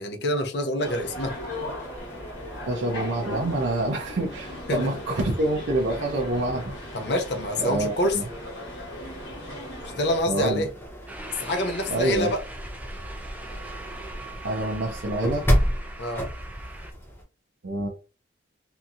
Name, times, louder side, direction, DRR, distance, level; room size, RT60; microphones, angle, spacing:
voice 1, 0.0-1.4 4.7-4.8 5.2-5.3 6.9-8.2 10.0-10.7 11.4-12.4 16.0-16.2, left 1 dB, 60° left, 0.6 m, -26 dB
sound 1, 0.8-10.2, left 1 dB, 75° left, 1.2 m, -38 dB
sound 2, 1.0-17.2, equal, 10° left, 0.7 m, -34 dB
voice 2, 2.7-6.7 7.6-8.2 10.3-10.7 11.9-12.3 14.4-15.5 17.6-17.9, right 1 dB, 70° right, 0.6 m, -26 dB
sound 3, 11.1-16.9, right 1 dB, 10° right, 0.3 m, -39 dB
2.8 x 2.6 x 2.4 m
head